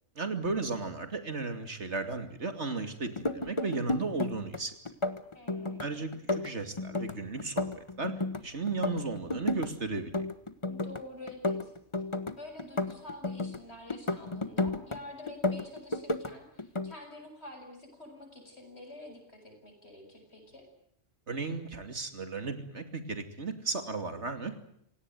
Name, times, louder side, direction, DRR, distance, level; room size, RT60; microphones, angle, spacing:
voice 1, 0.2-4.8 5.8-8.1 8.4-10.3 21.3-24.6, right 3 dB, 80° right, 8 dB, 3.0 m, -35 dB
sound 1, 3.1-4.6 4.9-5.9 6.1-8.4 8.7-9.7 10.0-11.0 11.3-13.6 13.9-15.0 15.3-16.3 16.6-16.9, left 2 dB, 25° left, 1.4 m, -32 dB
voice 2, 5.3-6.0 10.6-11.7 12.4-20.7, left 1 dB, 70° left, 4 dB, 7.9 m, -48 dB
27.5 x 18.0 x 9.3 m, 0.73 s
omnidirectional pair, 1.2 m